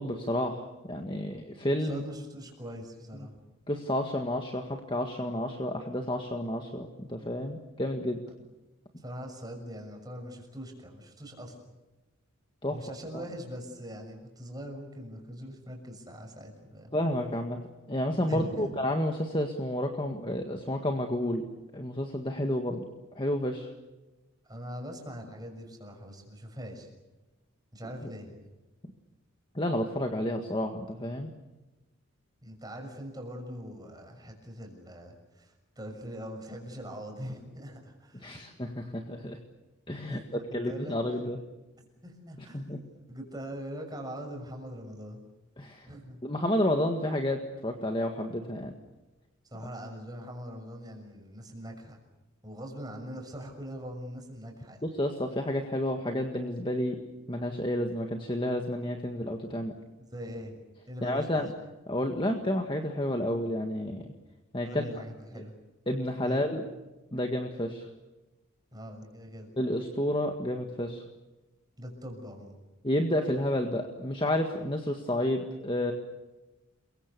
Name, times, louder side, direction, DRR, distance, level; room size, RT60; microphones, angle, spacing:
voice 1, 0.0-2.0 3.7-8.2 12.6-12.8 13.1-13.2 16.9-17.6 17.9-21.4 21.7-22.8 23.2-23.7 29.6-31.3 38.1-39.4 39.9-41.4 42.5-42.8 45.6-45.9 46.2-48.7 54.8-57.0 57.3-59.7 61.0-61.5 61.9-64.1 64.5-64.8 65.3-65.4 65.9-66.6 67.1-67.9 69.6-71.0 72.8-75.9, left 1 dB, 25° left, 4 dB, 1.7 m, -30 dB
voice 2, 1.8-3.3 8.4-8.5 9.0-11.7 12.7-16.9 18.3-18.8 24.4-26.9 27.7-28.3 32.4-38.3 40.1-41.0 42.0-42.6 43.1-45.2 45.9-46.2 49.5-52.0 52.4-54.8 60.1-60.6 60.9-61.4 64.6-65.5 66.2-66.4 68.7-69.5 71.8-72.6, equal, 20° right, 2 dB, 6.4 m, -42 dB
29.5 x 23.5 x 6.9 m, 1.1 s
head